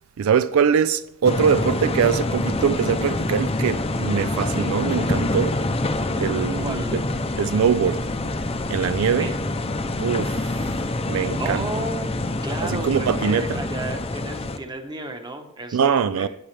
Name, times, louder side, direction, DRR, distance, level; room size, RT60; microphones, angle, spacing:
voice 1, 0.2-5.6 6.2-7.0 7.4-8.1 8.7-9.3 10.0-10.7 11.1-11.7 12.6-13.6 15.7-16.3, right 7 dB, 70° right, 0.4 m, -22 dB
sound 1, 1.2-14.6, left 2 dB, 25° left, 0.6 m, -26 dB
voice 2, 6.6-7.0 9.2-9.4 11.4-12.1 12.4-16.3, right 1 dB, 20° right, 1.1 m, -33 dB
17.0 x 6.3 x 3.3 m
head